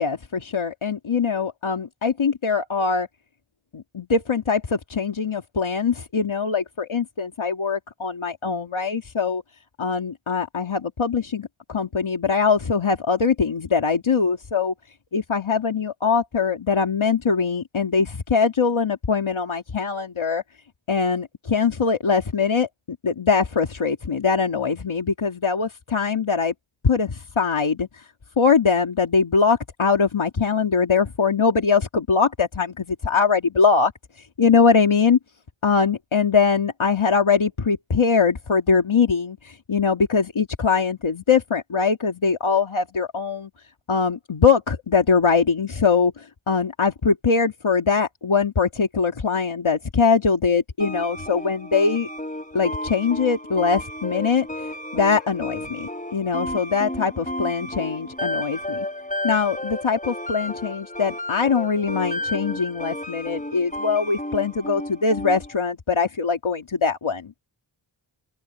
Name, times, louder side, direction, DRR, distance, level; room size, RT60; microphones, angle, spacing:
voice 1, 0.0-3.1 3.7-9.4 9.8-14.7 15.1-20.4 20.9-26.5 26.8-28.1 28.4-33.9 34.4-35.2 35.6-43.5 43.9-52.1 52.5-58.9 59.2-67.4, left 5 dB, 80° left, 2.1 m, -22 dB
sound 1, 50.8-65.6, left 1 dB, 15° left, 4.5 m, -32 dB
open air
wide cardioid pair, 45°, 47 cm